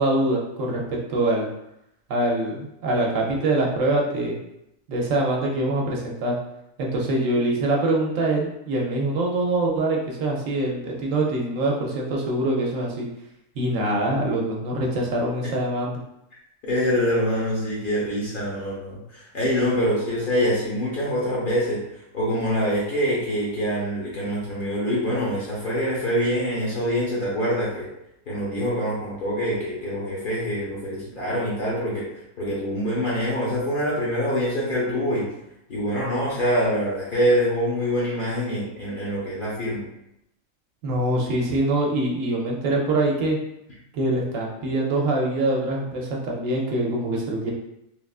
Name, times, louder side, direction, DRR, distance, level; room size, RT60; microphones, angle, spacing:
voice 1, 0.0-1.5 2.1-4.4 4.9-6.4 6.8-13.1 13.6-16.0 40.8-43.4 43.9-47.5, right 2 dB, 75° right, -1 dB, 1.0 m, -24 dB
voice 2, 16.6-21.8 22.1-27.9 28.3-32.1 32.4-35.3 35.7-39.9, equal, 50° left, -5 dB, 0.8 m, -25 dB
3.3 x 2.3 x 2.3 m, 0.83 s
omnidirectional pair, 1.4 m